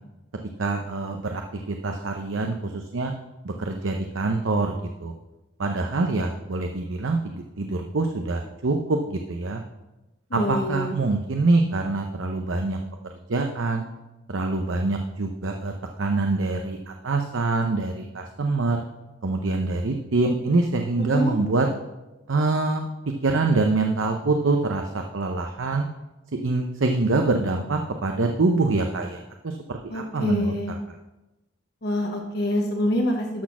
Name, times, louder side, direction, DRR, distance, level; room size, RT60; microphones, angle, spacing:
voice 1, 0.6-3.1 3.4-4.7 5.0-5.1 5.6-9.6 10.3-12.8 13.3-13.9 14.3-18.8 19.2-21.7 22.3-22.9 23.2-25.9 26.3-31.0, right 3 dB, 80° right, 4 dB, 0.7 m, -25 dB
voice 2, 10.3-10.9 21.1-21.4 29.9-30.7 31.8-33.4, left 1 dB, 55° left, 1 dB, 1.1 m, -25 dB
12.0 x 4.2 x 6.0 m, 1.0 s
head